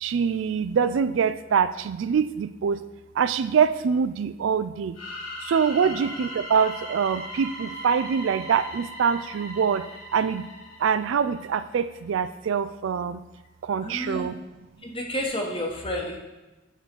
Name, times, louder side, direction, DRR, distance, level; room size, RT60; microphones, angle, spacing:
voice 1, 0.0-2.8 3.2-5.0 5.5-9.8 10.1-10.4 10.8-13.2 13.7-14.3, right 6 dB, 70° right, 13 dB, 0.3 m, -24 dB
sound 1, 4.9-11.6, equal, 85° left, 2.3 m, -39 dB
voice 2, 13.8-14.3 14.8-16.2, left 1 dB, 25° left, 0 dB, 1.2 m, -31 dB
8.1 x 3.9 x 6.0 m, 1.1 s
head